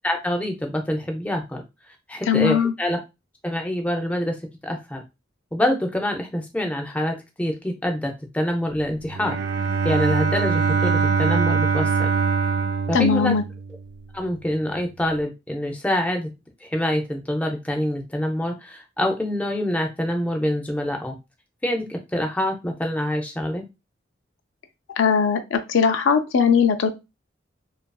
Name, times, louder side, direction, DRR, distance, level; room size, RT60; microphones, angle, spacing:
voice 1, 0.0-1.6 2.1-3.0 3.4-4.4 4.6-5.0 5.5-9.4 9.8-12.1 12.9-13.4 14.1-16.3 16.6-21.2 21.6-23.7, left 1 dB, 5° left, 2 dB, 0.4 m, -25 dB
voice 2, 2.3-2.7 12.9-13.4 25.0-26.9, left 6 dB, 75° left, 8 dB, 0.4 m, -19 dB
Bowed string instrument, 9.0-13.9, right 5 dB, 60° right, 0.4 m, -23 dB
2.7 x 2.4 x 2.2 m, 0.24 s
head